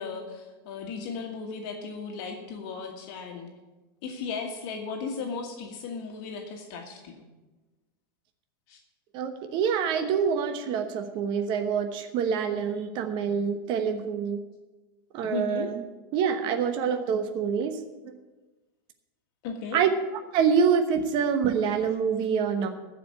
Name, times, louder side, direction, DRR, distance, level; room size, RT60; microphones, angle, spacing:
voice 1, 0.0-3.5 4.0-7.2 8.7-8.8 15.2-15.7 19.4-19.8, left 5 dB, 50° left, 2 dB, 1.6 m, -36 dB
voice 2, 9.1-14.4 15.1-15.8 16.1-17.8 18.0-18.1 19.7-19.9 20.3-22.7, right 7 dB, 40° right, 6 dB, 1.1 m, -26 dB
15.0 x 5.1 x 9.3 m, 1.2 s
supercardioid pair, 140°, 12 cm